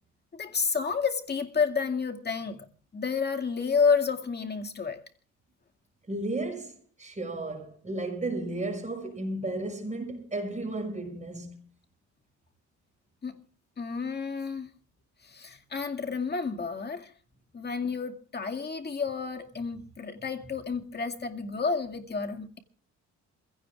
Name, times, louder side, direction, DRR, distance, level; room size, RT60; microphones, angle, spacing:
voice 1, 0.3-2.7 2.9-5.0 13.2-13.4 13.8-14.7 15.2-17.1 17.5-22.6, left 5 dB, 35° left, 2.2 m, -30 dB
voice 2, 6.1-11.6, right 2 dB, 25° right, 6.1 m, -34 dB
27.5 x 16.5 x 2.4 m
cardioid pair, 90°, 30 cm